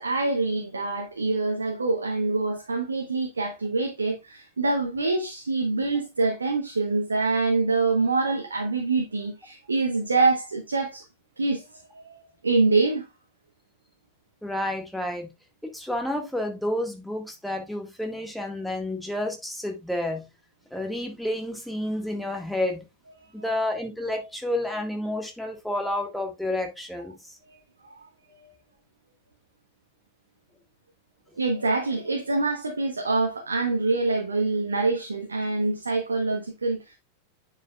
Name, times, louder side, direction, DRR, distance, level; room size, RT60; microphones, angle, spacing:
voice 1, 0.0-11.1 11.4-13.0 27.5-28.1 28.4-28.5 31.3-37.0, right 3 dB, 75° right, 1.2 m, -25 dB
voice 2, 14.4-15.3 15.6-20.3 20.7-22.9 23.3-27.4, left 1 dB, ahead, 1.8 m, -30 dB
9.5 x 5.3 x 2.4 m
figure-of-eight pair, 90°, 0 cm